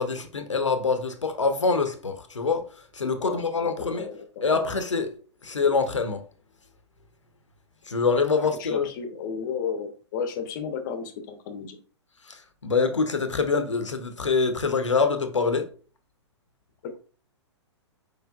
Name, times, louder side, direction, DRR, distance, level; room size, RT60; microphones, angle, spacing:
voice 1, 0.0-4.1 4.4-5.1 5.4-6.2 7.9-8.9 12.2-15.7, left 4 dB, 80° left, 0.8 m, -25 dB
voice 2, 3.2-4.6 8.4-11.8 16.8-17.0, left 6 dB, 40° left, 0.9 m, -33 dB
4.8 x 4.6 x 2.4 m
figure-of-eight pair, 115°, 15 cm